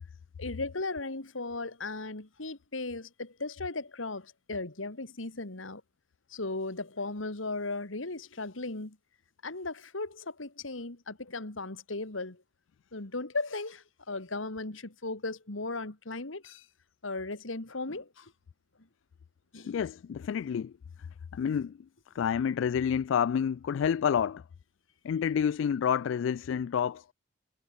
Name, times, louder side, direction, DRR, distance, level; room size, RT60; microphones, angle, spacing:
voice 1, 0.4-5.8 6.3-9.0 9.4-12.4 12.9-16.7 17.0-18.3 19.5-19.7, left 3 dB, 90° left, 2.4 m, -37 dB
voice 2, 19.7-20.7 21.3-21.8 22.2-24.4 25.0-27.0, left 7 dB, 70° left, 0.3 m, -29 dB
head